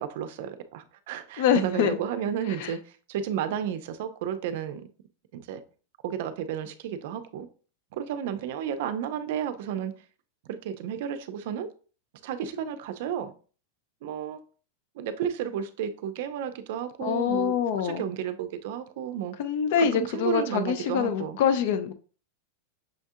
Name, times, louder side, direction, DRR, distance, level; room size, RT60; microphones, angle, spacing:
voice 1, 0.0-2.8 3.1-4.9 5.3-5.6 6.0-7.5 7.9-9.9 10.5-11.7 12.2-13.3 14.0-14.4 15.0-19.3 19.8-21.4, right 9 dB, 55° right, 0.5 m, -32 dB
voice 2, 1.4-2.0 2.5-2.7 17.0-18.0 19.4-21.9, left 8 dB, 55° left, 0.5 m, -25 dB
6.3 x 2.7 x 2.4 m
supercardioid pair, 160°, 0 cm